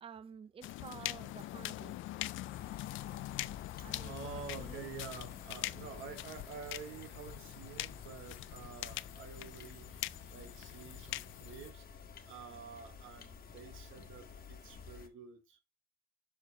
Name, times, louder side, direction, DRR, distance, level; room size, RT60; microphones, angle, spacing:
voice 1, 0.0-2.0 3.8-4.9, right 7 dB, 30° right, 0.5 m, -51 dB
sound 1, 0.6-11.7, left 15 dB, 80° left, 0.4 m, -43 dB
sound 2, 2.2-3.3 4.2-5.7 6.7-8.6 9.9-11.1 11.7-11.8, left 4 dB, 30° left, 1.8 m, -66 dB
sound 3, 2.5-15.1, left 6 dB, 50° left, 1.3 m, -52 dB
voice 2, 4.0-11.9 12.3-15.6, right 7 dB, 90° right, 1.3 m, -49 dB
6.1 x 5.0 x 4.6 m
cardioid pair, 90°, 20 cm